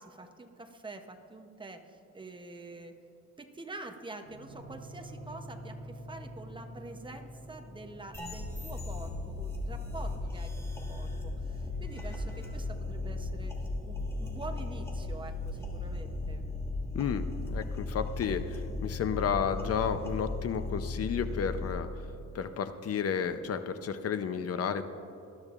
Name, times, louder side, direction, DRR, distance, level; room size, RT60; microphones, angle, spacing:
voice 1, 0.0-2.9 3.4-13.5 13.8-16.4, right 2 dB, 15° right, 5 dB, 0.7 m, -46 dB
sound 1, 4.2-16.2, right 1 dB, 65° right, 1.2 m, -50 dB
sound 2, 8.1-21.7, left 2 dB, 10° left, 1.4 m, -36 dB
voice 2, 16.9-22.0 22.3-24.8, left 7 dB, 55° left, 10 dB, 0.6 m, -32 dB
19.0 x 12.5 x 2.5 m, 2.8 s
wide cardioid pair, 150°, 29 cm